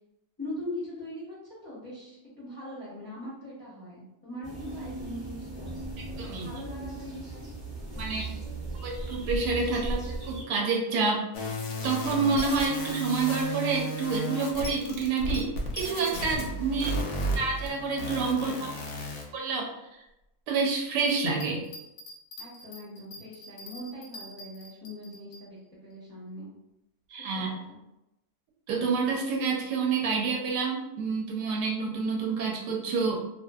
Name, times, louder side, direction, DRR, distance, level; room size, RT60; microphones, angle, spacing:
voice 1, 0.4-1.4 1.6-5.8 6.2-7.5 7.9-8.4 16.5-17.0 18.2-18.8 22.4-26.5 27.3-27.8, left 1 dB, 25° left, -10 dB, 0.5 m, -42 dB
sound 1, 4.4-10.4, right 2 dB, 20° right, 0.9 m, -37 dB
voice 2, 6.0-6.5 8.0-8.3 8.8-10.0 10.3-11.5 11.8-16.9 17.4-18.7 19.3-19.7 20.5-21.6 27.1-27.5 28.7-33.2, right 4 dB, 85° right, 0 dB, 1.1 m, -28 dB
sound 2, 11.3-19.3, equal, 65° left, 0.7 m, -33 dB
Bell, 21.0-25.4 25.9-26.0, left 1 dB, 90° left, 1.2 m, -46 dB
2.6 x 2.5 x 2.2 m, 0.89 s
omnidirectional pair, 1.7 m